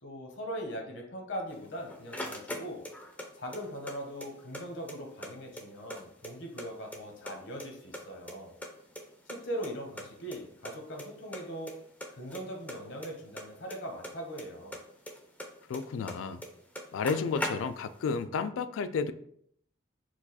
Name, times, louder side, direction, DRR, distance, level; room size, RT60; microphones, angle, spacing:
voice 1, 0.0-2.8 3.3-8.5 9.3-11.7 12.1-14.8, equal, 65° left, 2 dB, 1.0 m, -40 dB
sound 1, 1.5-3.3 3.5-4.6 4.9-5.0 5.2-6.7 6.9-7.7 7.9-9.4 9.6-9.7 10.0-10.1 10.3-10.4 10.6-11.1 11.3-11.7 12.0-14.4 14.7-16.2 16.4-16.5 16.7-18.0, left 1 dB, 10° left, 0.4 m, -39 dB
voice 2, 15.7-16.4 16.9-19.1, left 5 dB, 85° left, 13 dB, 0.3 m, -32 dB
4.6 x 2.3 x 4.0 m, 0.68 s
head